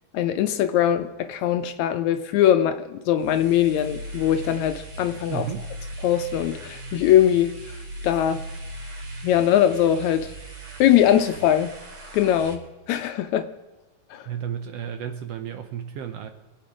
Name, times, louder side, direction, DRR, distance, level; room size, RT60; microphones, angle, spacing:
voice 1, 0.1-5.5 6.0-7.5 8.0-8.4 9.2-10.3 10.8-11.7 12.1-13.5 14.1-14.3, left 11 dB, 75° left, 9 dB, 1.9 m, -21 dB
sound 1, 3.1-12.5, right 1 dB, 45° right, 3.7 m, -38 dB
voice 2, 5.3-5.8 14.2-16.3, right 9 dB, 70° right, 8 dB, 1.5 m, -32 dB
25.0 x 8.6 x 5.0 m, 1.2 s
omnidirectional pair, 3.5 m